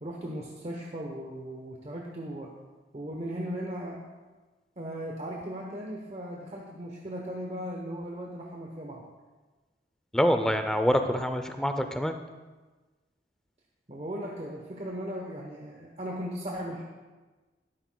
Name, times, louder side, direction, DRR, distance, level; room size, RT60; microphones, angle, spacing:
voice 1, 0.0-2.5 2.9-4.1 4.8-9.0 13.9-16.8, equal, 35° right, -1 dB, 0.9 m, -37 dB
voice 2, 10.1-12.2, equal, 5° left, 7 dB, 0.5 m, -25 dB
13.0 x 12.0 x 2.3 m, 1.3 s
head